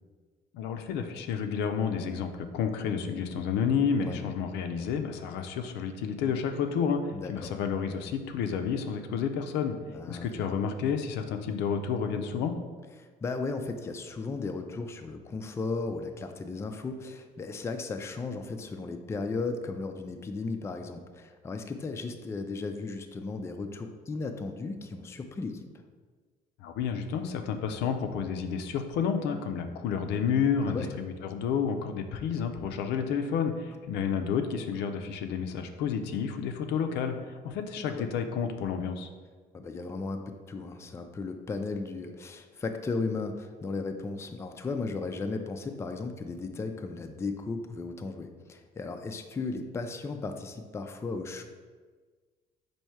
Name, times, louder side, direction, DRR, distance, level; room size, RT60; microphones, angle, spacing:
voice 1, 0.5-9.8 10.1-12.5 26.6-39.1, left 7 dB, 85° left, 6 dB, 0.5 m, -30 dB
voice 2, 7.1-7.5 9.9-10.5 13.0-25.7 30.7-30.9 37.9-38.1 39.5-51.4, left 3 dB, 15° left, 6 dB, 0.3 m, -35 dB
4.3 x 2.7 x 4.6 m, 1.5 s
cardioid pair, 110°, 17 cm